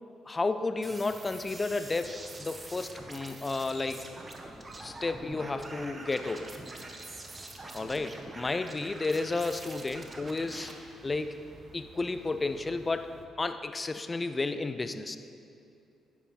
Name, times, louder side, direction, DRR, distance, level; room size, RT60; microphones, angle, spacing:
voice 1, 0.3-4.1 4.8-6.5 7.7-10.7 11.0-11.4 11.7-15.2, left 3 dB, 25° left, 10 dB, 0.6 m, -32 dB
sound 1, 0.8-10.7, right 2 dB, 25° right, 1.4 m, -45 dB
sound 2, 1.1-13.3, right 3 dB, 50° right, 1.3 m, -56 dB
10.5 x 9.5 x 5.9 m, 2.6 s
cardioid pair, 90°, 0 cm